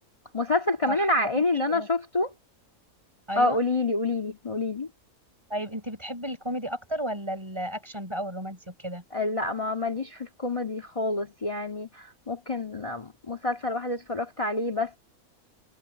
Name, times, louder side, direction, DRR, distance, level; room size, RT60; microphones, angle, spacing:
voice 1, 0.3-2.3 3.4-4.9 9.1-15.0, left 2 dB, 20° left, 2.0 m, -27 dB
voice 2, 1.3-1.9 3.3-3.6 5.5-9.0, equal, 20° right, 5.3 m, -33 dB
omnidirectional pair, 1.6 m